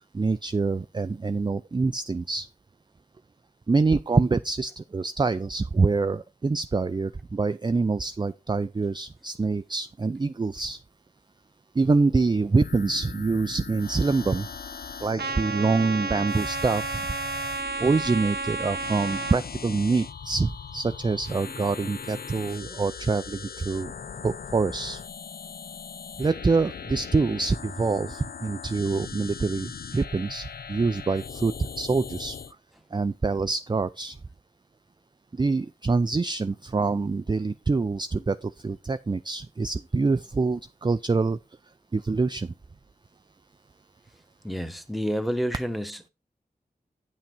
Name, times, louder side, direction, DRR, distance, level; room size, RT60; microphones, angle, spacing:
voice 1, 0.1-2.5 3.7-10.8 11.7-14.5 15.0-17.1 17.8-23.9 24.2-25.0 26.2-32.4 32.9-34.2 35.3-41.4 41.9-42.5, right 3 dB, 25° right, 0.4 m, -25 dB
sound 1, 12.5-32.5, left 6 dB, 65° left, 0.5 m, -40 dB
Trumpet, 15.2-19.4, right 4 dB, 80° right, 0.6 m, -31 dB
voice 2, 44.4-46.1, equal, ahead, 1.1 m, -29 dB
8.9 x 5.9 x 4.4 m
wide cardioid pair, 45°, 17 cm